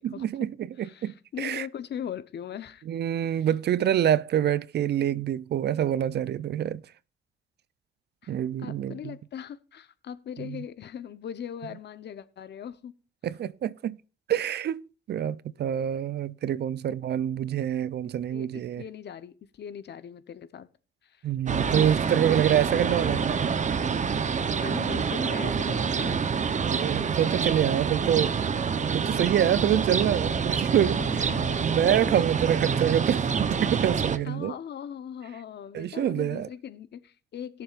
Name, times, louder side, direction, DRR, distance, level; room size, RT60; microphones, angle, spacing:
voice 1, 0.0-1.7 2.9-6.8 8.3-9.1 10.4-10.6 13.2-14.0 14.3-18.8 21.2-23.3 26.6-28.4 28.9-31.3 31.6-34.5 35.7-36.5, right 10 dB, 55° right, 0.6 m, -26 dB
voice 2, 0.8-2.8 3.1-3.5 8.2-12.9 18.3-18.5 18.8-20.7 21.0-21.3 21.7-21.8 23.1-23.4 24.6-26.2 29.1-29.3 29.9-30.5 30.8-32.0 34.2-37.6, left 9 dB, 60° left, 1.0 m, -40 dB
sound 1, 21.5-34.2, right 6 dB, 35° right, 0.9 m, -27 dB
21.0 x 7.1 x 2.5 m
cardioid pair, 90°, 20 cm